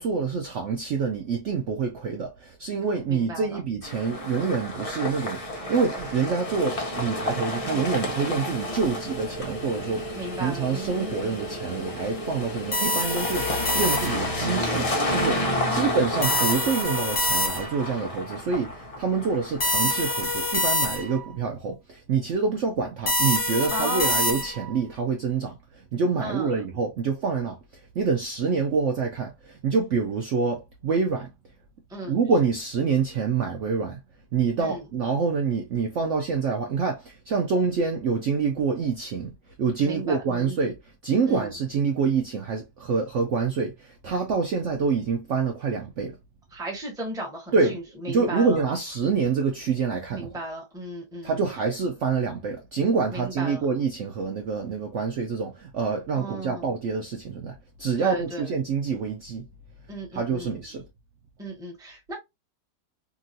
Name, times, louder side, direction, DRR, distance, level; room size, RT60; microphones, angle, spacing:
voice 1, 0.0-27.6 27.9-31.3 32.0-34.0 34.3-39.3 39.6-46.2 47.5-47.8 48.1-50.4 51.2-59.5 60.1-60.8, right 5 dB, 65° right, 0.8 m, -26 dB
voice 2, 3.1-3.6 10.1-11.4 15.5-16.1 23.7-24.4 26.2-26.6 31.9-32.2 34.6-34.8 39.8-40.5 41.3-41.5 46.5-48.6 50.1-51.4 53.1-53.7 56.1-56.7 58.0-58.5 59.9-60.6 61.4-62.1, right 1 dB, 5° right, 0.7 m, -35 dB
sound 1, 3.8-20.8, left 1 dB, 70° left, 0.3 m, -31 dB
sound 2, 12.7-14.3 16.2-17.9 19.6-21.3 23.1-24.7, left 1 dB, 30° left, 0.6 m, -26 dB
2.9 x 2.6 x 2.6 m
omnidirectional pair, 1.7 m